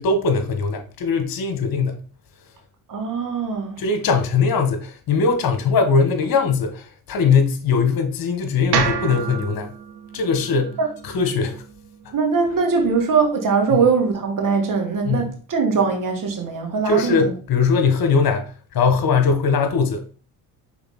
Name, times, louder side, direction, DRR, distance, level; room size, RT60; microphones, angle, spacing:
voice 1, 0.0-2.0 3.8-9.7 10.1-10.8 11.0-11.6 13.7-13.8 15.0-15.3 16.8-20.0, left 5 dB, 55° left, 1.6 m, -20 dB
voice 2, 2.9-3.8 10.8-10.9 12.1-17.3, right 5 dB, 50° right, 2.0 m, -21 dB
sound 1, 8.7-12.9, right 7 dB, 65° right, 1.1 m, -29 dB
5.5 x 4.3 x 4.3 m
supercardioid pair, 70°, 42 cm